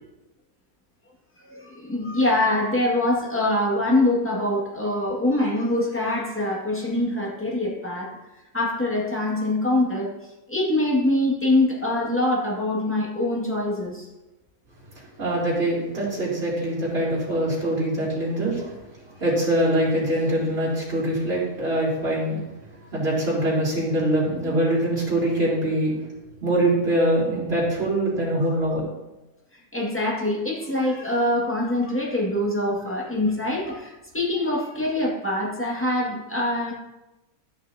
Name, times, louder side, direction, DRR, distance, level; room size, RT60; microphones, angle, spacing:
voice 1, 1.5-8.1 8.5-10.1 10.5-14.1 29.7-36.7, left 1 dB, 10° left, -5 dB, 1.9 m, -24 dB
voice 2, 15.2-18.7 19.2-22.4 22.9-25.9 26.4-28.8, right 1 dB, 45° right, -6 dB, 3.3 m, -23 dB
13.0 x 5.9 x 2.8 m, 0.99 s
omnidirectional pair, 1.6 m